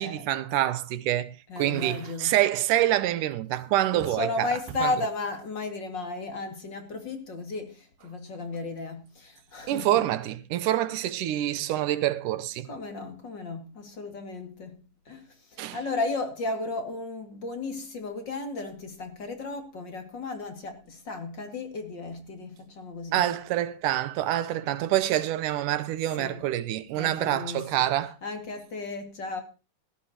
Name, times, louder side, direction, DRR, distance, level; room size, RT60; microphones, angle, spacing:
voice 1, 0.0-4.5 4.8-4.9 9.7-12.7 15.6-15.8 23.1-28.2, right 13 dB, 90° right, 2.4 m, -26 dB
voice 2, 1.5-2.3 3.9-10.0 12.7-14.8 15.1-23.3 26.2-26.4 27.0-27.9 28.2-29.4, left 3 dB, 40° left, 2.6 m, -34 dB
18.0 x 13.0 x 2.9 m
omnidirectional pair, 3.6 m